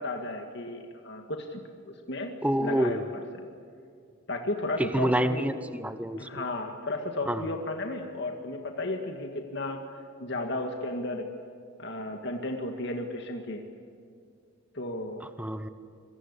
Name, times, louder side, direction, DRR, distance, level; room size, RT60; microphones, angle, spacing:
voice 1, 0.0-1.6 1.8-3.2 4.3-5.5 6.2-9.8 10.2-11.3 11.8-13.6 14.7-15.3, left 2 dB, 55° left, 3 dB, 1.9 m, -34 dB
voice 2, 2.4-3.0 4.8-6.5 7.3-7.5 15.4-15.7, right 1 dB, 5° right, 11 dB, 0.9 m, -28 dB
26.0 x 23.5 x 8.3 m, 2.3 s
head